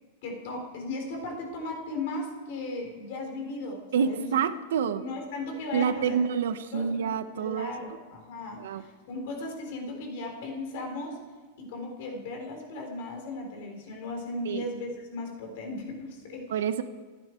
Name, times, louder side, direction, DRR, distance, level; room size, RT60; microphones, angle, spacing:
voice 1, 0.2-4.3 4.9-6.2 6.7-11.2 11.6-16.6, left 2 dB, 50° left, 2 dB, 3.9 m, -37 dB
voice 2, 3.9-5.0 5.7-7.7 8.6-8.8 14.5-14.6 16.5-16.8, right 7 dB, 85° right, 10 dB, 1.2 m, -27 dB
29.0 x 10.5 x 4.6 m, 1.3 s
supercardioid pair, 175°, 0 cm